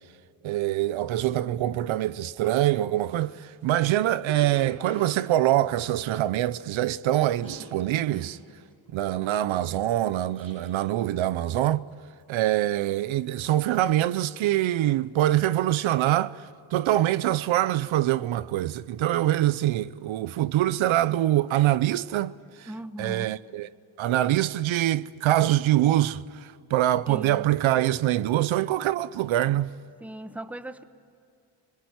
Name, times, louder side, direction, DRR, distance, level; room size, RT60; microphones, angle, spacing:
voice 1, 0.4-8.4 8.9-11.8 12.3-22.7 23.0-23.7 24.0-29.7, right 13 dB, 80° right, 0.7 m, -24 dB
Cough, 2.0-2.1 2.4-6.9 7.1-10.9 11.2-11.6 11.9-12.3 12.8-13.4 13.7-15.4 15.7-16.0, right 2 dB, 45° right, 7.9 m, -47 dB
voice 2, 22.6-23.3 27.1-27.5 30.0-30.8, right 1 dB, 5° right, 1.1 m, -38 dB
26.0 x 21.5 x 9.5 m
cardioid pair, 110°, 46 cm